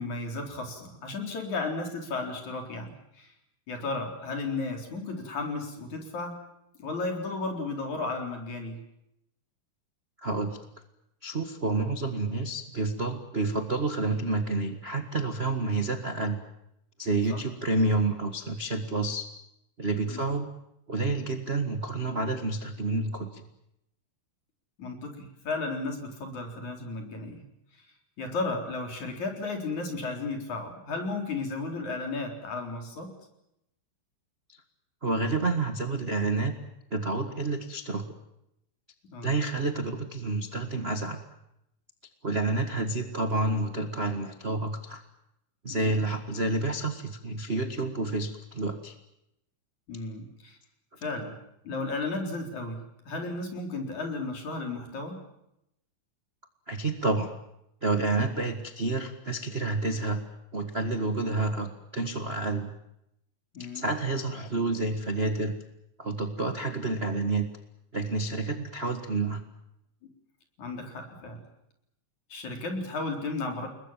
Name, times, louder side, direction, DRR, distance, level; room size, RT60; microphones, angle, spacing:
voice 1, 0.0-3.3 3.7-6.4 6.8-8.8 17.3-17.4 20.0-20.3 24.8-27.5 27.8-27.9 28.2-33.1 39.1-39.3 45.7-46.0 49.9-50.6 51.0-51.4 51.6-55.2 63.5-63.9 70.6-71.4 72.3-73.7, left 3 dB, 55° left, 3 dB, 5.4 m, -34 dB
voice 2, 10.2-10.6 11.2-16.4 17.0-19.3 19.8-20.5 20.9-23.4 34.5-34.6 35.0-36.6 36.9-38.0 39.2-41.2 42.2-45.0 45.6-48.9 56.7-57.3 57.8-60.2 60.5-62.7 63.6-65.6 66.0-67.5 67.9-69.4, right 2 dB, 40° right, 5 dB, 0.9 m, -29 dB
30.0 x 21.0 x 7.5 m, 0.81 s
omnidirectional pair, 4.1 m